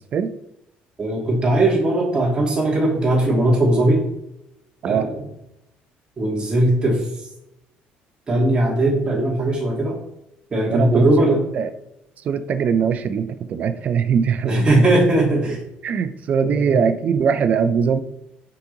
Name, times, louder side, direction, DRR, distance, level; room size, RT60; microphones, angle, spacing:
voice 1, 1.0-4.0 4.8-5.2 6.2-7.1 8.3-9.9 10.5-11.4 14.4-15.6 16.4-16.7, right 1 dB, 25° right, -3 dB, 2.4 m, -19 dB
voice 2, 10.7-11.7 12.2-14.9 15.8-18.0, right 6 dB, 45° right, 11 dB, 0.5 m, -21 dB
5.6 x 5.0 x 3.9 m, 0.84 s
cardioid pair, 115°, 3 cm